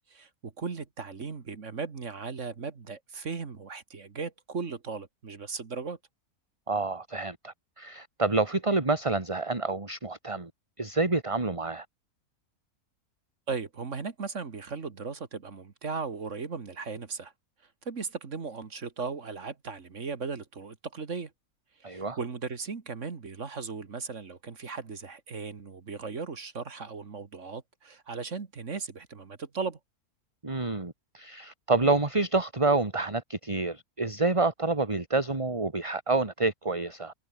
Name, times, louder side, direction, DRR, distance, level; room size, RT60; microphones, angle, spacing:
voice 1, 0.1-6.0 13.5-17.3 17.9-21.3 21.8-29.8, right 5 dB, 55° right, 2.1 m, -37 dB
voice 2, 6.7-10.5 10.8-11.9 21.8-22.2 30.4-37.1, right 3 dB, 20° right, 2.1 m, -28 dB
omnidirectional pair, 1.6 m